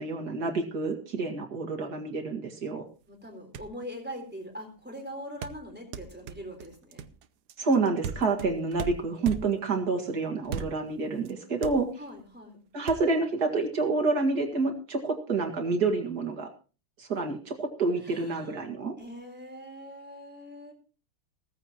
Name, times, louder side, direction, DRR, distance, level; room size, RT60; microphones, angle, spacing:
voice 1, 0.0-2.9 7.6-11.9 12.7-16.5 17.0-18.9, right 3 dB, 45° right, 3 dB, 2.4 m, -28 dB
voice 2, 3.1-7.1 12.0-12.6 18.0-18.7 19.0-20.7, equal, 5° right, 3 dB, 3.8 m, -42 dB
sound 1, 3.3-3.4 3.5-3.8 5.4-9.8 10.4-11.0 11.3-11.4 11.6-12.2 12.9-13.0, right 7 dB, 65° right, 1.1 m, -37 dB
16.5 x 14.5 x 2.9 m, 0.36 s
omnidirectional pair, 2.4 m